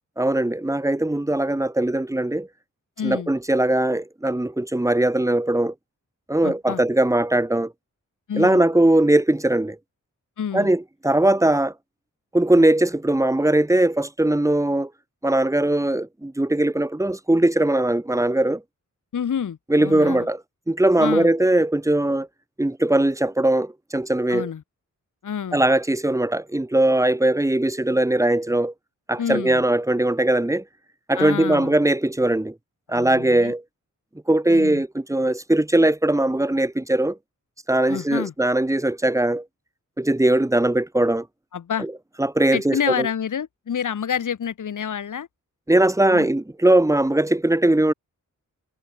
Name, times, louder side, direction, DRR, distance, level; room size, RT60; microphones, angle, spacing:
voice 1, 0.2-2.5 3.0-5.7 6.3-7.7 8.3-9.8 10.5-11.7 12.3-14.9 15.2-18.6 19.7-20.4 20.7-22.3 22.6-24.5 25.5-28.7 29.1-30.6 31.1-32.5 32.9-33.6 34.3-37.2 37.7-39.4 40.0-41.3 41.8-41.9 42.2-43.1 45.7-47.9, right 1 dB, 10° right, 2.0 m, -20 dB
voice 2, 3.0-3.3 6.4-6.8 8.3-8.7 10.4-10.7 19.1-20.3 21.0-21.3 24.3-24.6 25.2-25.6 29.2-29.6 31.1-31.7 32.9-33.5 34.5-34.8 37.9-38.3 41.5-41.9 42.5-45.3 46.1-46.3, left 8 dB, 70° left, 2.0 m, -28 dB
wide cardioid pair, 150°, 32 cm